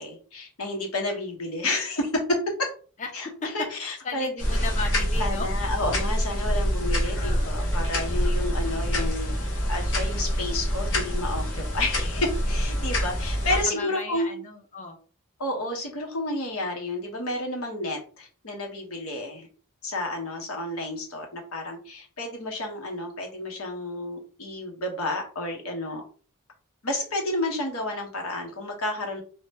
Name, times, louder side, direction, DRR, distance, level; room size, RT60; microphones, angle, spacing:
voice 1, 0.0-2.7 3.1-4.3 5.2-9.3 9.7-14.3 15.4-19.5 19.8-26.0 26.8-29.2, left 2 dB, 85° left, 2 dB, 1.0 m, -30 dB
voice 2, 4.0-5.5 7.2-7.6 8.7-9.3 13.5-15.0, left 4 dB, 35° left, 4 dB, 0.6 m, -36 dB
sound 1, 4.4-13.6, equal, 60° left, 1.0 m, -26 dB
2.8 x 2.1 x 3.3 m, 0.40 s
head